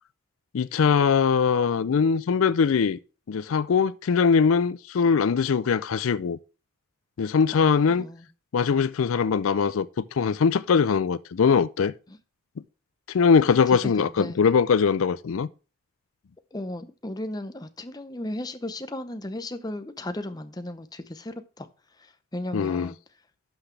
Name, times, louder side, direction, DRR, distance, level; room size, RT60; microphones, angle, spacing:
voice 1, 0.5-3.0 3.3-6.4 7.2-8.1 8.5-9.9 10.2-11.9 13.1-15.5 22.5-22.9, left 6 dB, 80° left, 0.4 m, -21 dB
voice 2, 7.5-8.3 12.1-12.2 13.7-14.4 16.5-21.7 22.0-23.0, left 1 dB, 20° left, 0.7 m, -35 dB
11.5 x 6.0 x 3.3 m
head